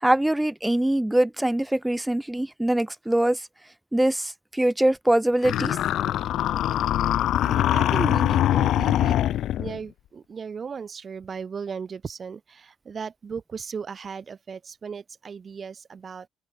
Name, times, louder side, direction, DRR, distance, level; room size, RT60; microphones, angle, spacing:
voice 1, 0.0-3.4 3.9-5.8, right 1 dB, 10° right, 1.7 m, -23 dB
sound 1, 5.4-9.8, left 12 dB, 60° left, 1.3 m, -23 dB
voice 2, 7.4-9.2 9.6-16.3, right 6 dB, 40° right, 1.3 m, -36 dB
open air
figure-of-eight pair, 50°, 0 cm